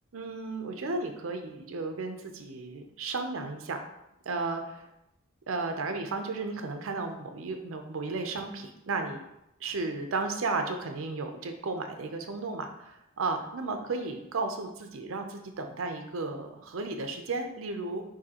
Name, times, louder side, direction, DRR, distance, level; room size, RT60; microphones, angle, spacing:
voice 1, 0.1-3.8 4.3-4.9 5.5-9.2 9.6-18.0, right 3 dB, 75° right, 5 dB, 0.5 m, -34 dB
6.4 x 2.7 x 2.9 m, 0.84 s
head